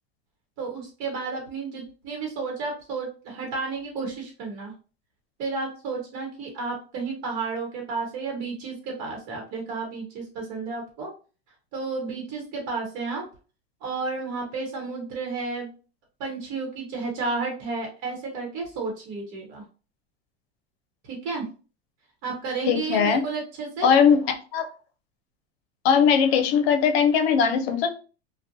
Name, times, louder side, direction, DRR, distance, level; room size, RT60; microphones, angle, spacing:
voice 1, 0.6-4.7 5.4-11.1 11.7-13.2 13.8-15.7 16.2-19.6 21.0-21.5 22.2-23.9, right 4 dB, 55° right, 0 dB, 1.0 m, -32 dB
voice 2, 22.7-23.2 23.8-24.2 24.5-24.7 25.8-28.0, left 7 dB, 75° left, 8 dB, 0.6 m, -19 dB
2.4 x 2.1 x 2.6 m, 0.36 s
supercardioid pair, 125°, 32 cm